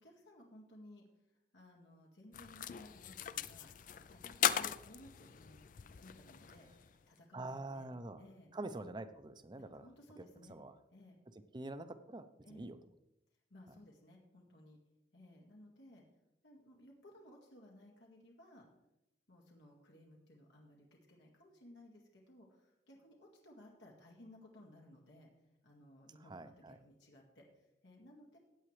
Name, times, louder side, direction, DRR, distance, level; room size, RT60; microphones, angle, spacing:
voice 1, 0.0-1.0 1.5-5.6 6.0-7.9 8.2-8.5 9.5-10.5 10.9-11.2 12.4-12.7 13.5-14.8 15.1-16.0 16.4-18.7 19.3-25.3 25.6-28.4, left 1 dB, 90° left, -1 dB, 2.0 m, -59 dB
sound 1, 2.3-7.0, left 9 dB, 45° left, 0.4 m, -39 dB
voice 2, 7.3-8.2 8.5-9.9 10.5-10.7 11.5-12.8 26.3-26.8, right 2 dB, 25° right, 11 dB, 0.6 m, -45 dB
16.0 x 8.8 x 3.3 m, 0.88 s
head